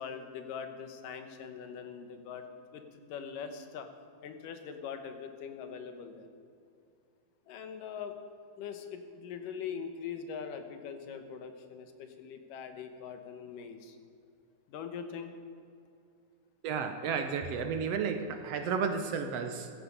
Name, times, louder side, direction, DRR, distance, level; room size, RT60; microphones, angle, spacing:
voice 1, 0.0-3.9 4.2-6.3 7.5-8.1 8.6-14.0 14.7-15.3, left 7 dB, 80° left, 7 dB, 2.7 m, -42 dB
voice 2, 16.6-19.7, right 6 dB, 70° right, 7 dB, 1.5 m, -32 dB
15.5 x 14.5 x 5.3 m, 2.5 s
omnidirectional pair, 3.9 m